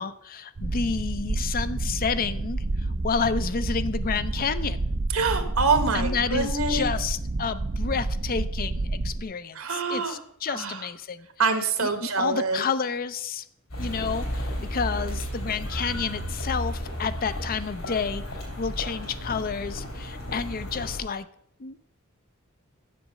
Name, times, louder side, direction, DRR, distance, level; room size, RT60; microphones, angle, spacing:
voice 1, 0.0-4.9 5.9-11.3 11.8-13.4 13.8-18.2 18.6-21.3 21.6-21.8, left 5 dB, 45° left, 13 dB, 0.5 m, -30 dB
sound 1, 0.6-9.2, right 2 dB, 35° right, 0.5 m, -29 dB
voice 2, 5.1-6.9 9.5-10.2 10.5-10.8 11.4-12.6, right 4 dB, 75° right, 8 dB, 1.4 m, -25 dB
sound 2, 13.7-21.0, equal, 70° left, 3.6 m, -33 dB
7.7 x 7.2 x 6.5 m, 0.69 s
head